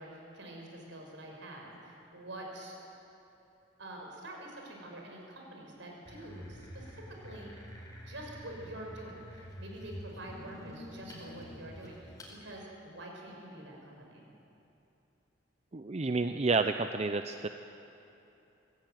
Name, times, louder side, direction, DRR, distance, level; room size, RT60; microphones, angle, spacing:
voice 1, 0.0-2.8 3.8-7.5 8.0-14.3, right 1 dB, 70° right, 0 dB, 5.5 m, -46 dB
sound 1, 6.0-12.3, equal, 20° left, 4.6 m, -48 dB
voice 2, 15.7-17.5, right 3 dB, 35° right, 8 dB, 0.5 m, -30 dB
24.0 x 16.5 x 9.2 m, 2.9 s
head